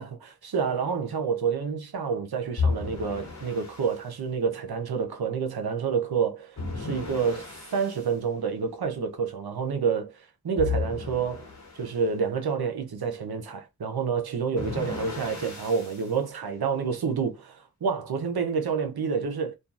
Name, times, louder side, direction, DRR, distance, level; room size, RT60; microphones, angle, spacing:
voice 1, 0.0-11.5 11.7-19.6, right 6 dB, 85° right, 0.7 m, -28 dB
sound 1, 2.6-4.0 6.6-8.1 10.6-11.9 14.6-16.1, left 4 dB, 50° left, 1.0 m, -33 dB
2.7 x 2.3 x 2.3 m
wide cardioid pair, 40°, 36 cm